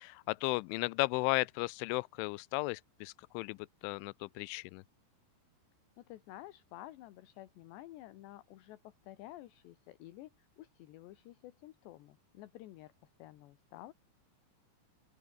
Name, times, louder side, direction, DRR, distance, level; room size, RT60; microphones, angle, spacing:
voice 1, 0.0-4.8, left 25 dB, 90° left, 3.0 m, -35 dB
voice 2, 6.0-13.9, left 15 dB, 75° left, 3.3 m, -52 dB
open air
omnidirectional pair, 5.4 m